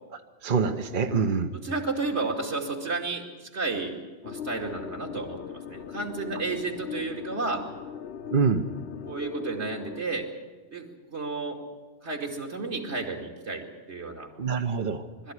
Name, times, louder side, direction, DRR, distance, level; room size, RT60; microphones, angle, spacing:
voice 1, 0.4-1.5 8.3-8.7 14.4-15.1, right 5 dB, 50° right, 6 dB, 1.2 m, -25 dB
voice 2, 1.5-4.0 4.2-7.6 9.1-10.3 10.7-11.6 12.0-14.3 15.2-15.3, right 3 dB, 85° right, 1 dB, 2.8 m, -32 dB
sound 1, 4.2-10.0, left 8 dB, 75° left, 1.1 m, -39 dB
21.5 x 13.5 x 9.9 m, 1.3 s
omnidirectional pair, 1.1 m